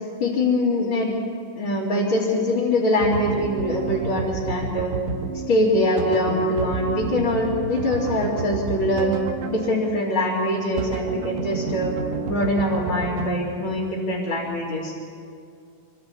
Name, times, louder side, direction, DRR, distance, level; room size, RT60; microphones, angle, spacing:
voice 1, 0.2-1.1 1.6-4.9 5.5-9.1 9.5-11.9 12.2-14.9, left 1 dB, 40° left, -7 dB, 3.5 m, -23 dB
sound 1, 3.0-10.0 10.8-13.3, right 5 dB, 70° right, 2.5 m, -30 dB
27.5 x 24.5 x 4.2 m, 2.3 s
omnidirectional pair, 3.8 m